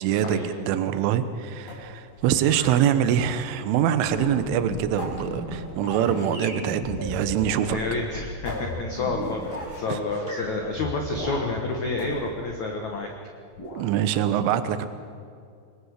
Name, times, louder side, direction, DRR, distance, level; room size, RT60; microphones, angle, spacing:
voice 1, 0.0-7.8 9.9-10.0 13.7-14.9, right 10 dB, 75° right, 11 dB, 3.4 m, -24 dB
sound 1, 1.7-2.9 4.0-4.6 5.0-6.4 7.4-7.7 8.0-8.1 8.5-9.9 11.1-11.6 12.0-13.1 13.5-13.9, left 2 dB, 45° left, 6.2 m, -39 dB
sound 2, 4.1-9.8 10.1-11.9, left 1 dB, 10° left, 5.1 m, -35 dB
voice 2, 7.7-13.1, left 3 dB, 80° left, 2 dB, 1.6 m, -29 dB
28.0 x 20.0 x 6.7 m, 2.3 s
omnidirectional pair, 5.9 m